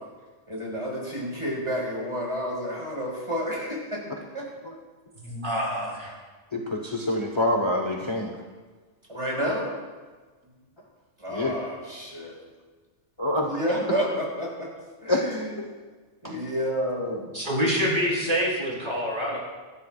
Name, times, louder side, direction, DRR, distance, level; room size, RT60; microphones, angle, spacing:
voice 1, 0.5-4.0 4.3-4.4 9.1-9.7 11.2-12.4 13.5-14.7 15.0-15.6 16.2-17.3, equal, 25° right, -4 dB, 5.0 m, -30 dB
voice 2, 5.2-6.1 17.3-19.4, equal, 40° right, -4 dB, 4.0 m, -26 dB
voice 3, 6.5-8.4 11.3-11.5 13.2-13.5 15.1-15.2 15.5-15.8, left 1 dB, 25° left, 1 dB, 1.2 m, -26 dB
25.0 x 13.0 x 2.5 m, 1.4 s
omnidirectional pair, 1.2 m